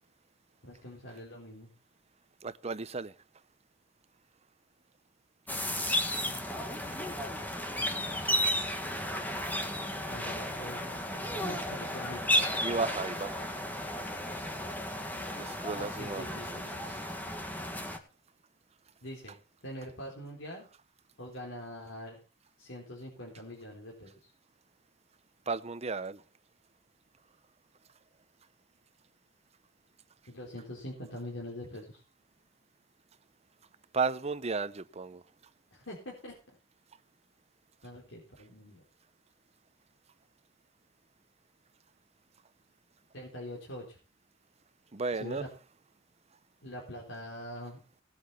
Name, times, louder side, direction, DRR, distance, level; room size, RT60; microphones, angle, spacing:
voice 1, 0.6-1.7 6.3-7.0 10.1-11.0 11.3-12.5 15.7-16.9 19.0-19.3 19.6-20.7 21.2-22.2 22.6-24.1 30.3-32.0 35.7-36.3 37.8-38.8 43.1-44.0 45.2-45.5 46.6-47.8, left 1 dB, 80° left, 4.1 m, -44 dB
voice 2, 2.4-3.1 12.6-13.6 15.3-16.6 16.9-17.0 25.5-26.2 33.9-35.2 44.9-45.4, right 4 dB, 35° right, 0.7 m, -34 dB
sound 1, 5.5-18.0, equal, 10° left, 1.9 m, -33 dB
18.5 x 8.1 x 4.1 m
head